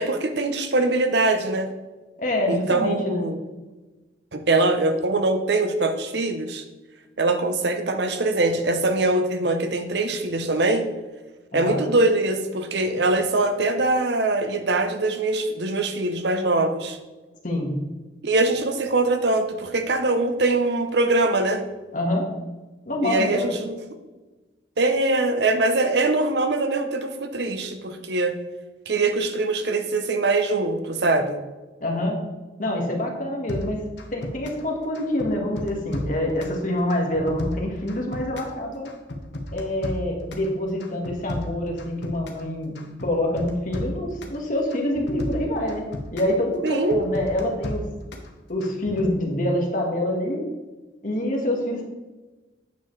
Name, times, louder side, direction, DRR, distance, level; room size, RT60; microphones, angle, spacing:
voice 1, 0.0-1.7 2.5-3.4 4.3-6.6 7.2-10.8 11.5-17.0 18.2-21.6 23.0-23.8 24.8-28.3 28.9-31.4 46.6-47.0, right 2 dB, 65° right, 7 dB, 0.8 m, -22 dB
voice 2, 2.2-3.2 11.5-11.8 17.4-17.7 21.9-22.3 22.8-23.6 31.8-32.2 32.6-33.8 34.1-38.9 39.5-45.9 46.1-47.8 48.5-50.5 51.0-51.8, left 1 dB, 45° left, 0 dB, 1.6 m, -26 dB
sound 1, 33.5-34.7 34.9-36.6 36.9-38.6 38.8-40.5 40.8-42.5 42.8-44.4 44.7-46.4 46.7-48.3 48.6-49.1, left 1 dB, 70° left, 1.2 m, -33 dB
9.2 x 6.6 x 3.2 m, 1.2 s
head